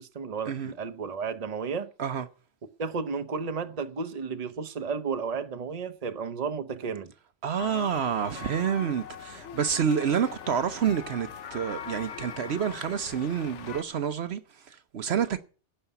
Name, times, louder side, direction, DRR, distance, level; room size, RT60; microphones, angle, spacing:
voice 1, 0.0-1.9 2.8-7.1, right 5 dB, 35° right, 1.0 m, -33 dB
voice 2, 7.4-15.4, right 7 dB, 65° right, 1.0 m, -28 dB
sound 1, 7.6-13.8, left 8 dB, 90° left, 1.2 m, -41 dB
17.0 x 5.7 x 8.0 m
omnidirectional pair, 1.2 m